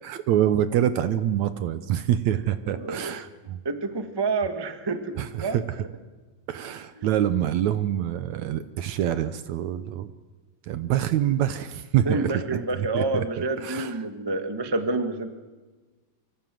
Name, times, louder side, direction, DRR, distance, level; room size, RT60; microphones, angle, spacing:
voice 1, 0.0-3.6 5.2-5.9 6.5-10.1 10.6-14.1, right 11 dB, 70° right, 13 dB, 1.9 m, -26 dB
voice 2, 2.8-3.1 3.6-5.1 5.4-5.6 12.0-15.3, right 3 dB, 25° right, 8 dB, 0.5 m, -28 dB
24.5 x 24.5 x 7.6 m, 1.3 s
omnidirectional pair, 3.9 m